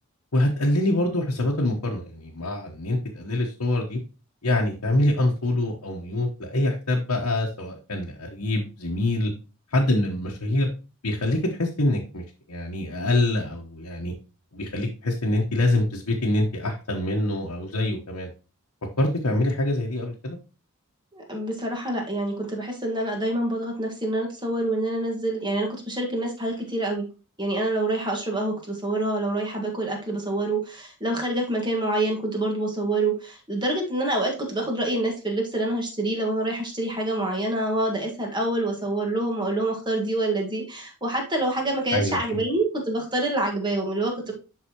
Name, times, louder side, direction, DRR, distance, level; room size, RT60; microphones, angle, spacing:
voice 1, 0.3-4.0 4.4-9.3 9.7-10.7 11.0-14.1 14.5-18.3 19.0-20.4 41.9-42.4, left 1 dB, 85° left, -1 dB, 1.1 m, -25 dB
voice 2, 21.1-27.1 27.4-44.3, right 1 dB, 20° right, 1 dB, 1.6 m, -26 dB
11.0 x 4.0 x 2.9 m, 0.33 s
head